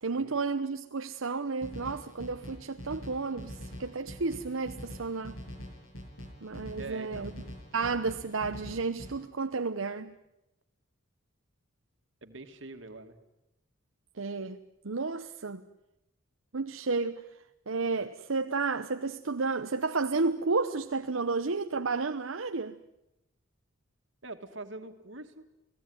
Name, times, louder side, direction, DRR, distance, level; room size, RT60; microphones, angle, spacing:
voice 1, 0.0-5.4 6.4-7.3 7.7-10.1 14.2-14.6 14.8-15.6 16.5-17.2 17.7-22.8, right 4 dB, 80° right, 0.9 m, -32 dB
sound 1, 1.6-9.1, equal, 80° left, 7.0 m, -44 dB
voice 2, 6.8-7.3 12.2-13.2 24.2-25.5, right 2 dB, 65° right, 2.4 m, -44 dB
30.0 x 18.5 x 9.7 m
head